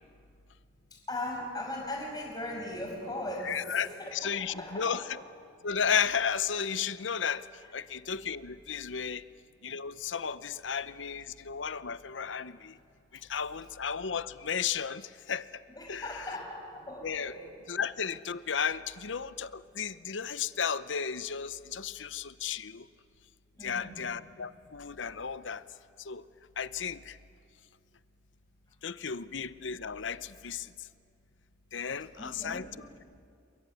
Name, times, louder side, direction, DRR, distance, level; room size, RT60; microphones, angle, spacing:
voice 1, 0.9-5.1 15.8-17.5 23.6-24.0 32.2-32.8, left 1 dB, 20° left, 0 dB, 6.2 m, -39 dB
voice 2, 3.4-5.2 5.6-9.2 9.6-12.8 13.1-15.6 15.9-16.3 17.0-17.3 17.7-22.9 23.6-25.6 26.0-26.3 26.6-27.2 28.8-30.9 31.7-32.7, left 7 dB, 75° left, 15 dB, 0.8 m, -34 dB
27.5 x 23.0 x 9.2 m, 2.3 s
head